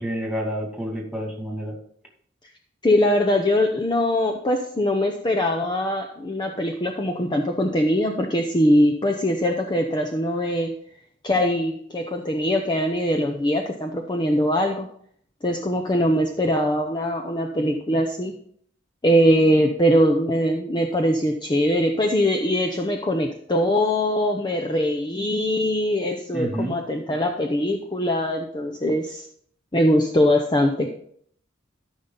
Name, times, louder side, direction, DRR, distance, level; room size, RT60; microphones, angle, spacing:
voice 1, 0.0-1.8 26.3-26.7, equal, 5° right, 0 dB, 2.3 m, -29 dB
voice 2, 2.8-10.7 11.2-14.9 15.4-18.3 19.0-29.2 29.7-30.9, equal, 25° left, 2 dB, 0.7 m, -22 dB
13.5 x 5.7 x 3.9 m, 0.63 s
head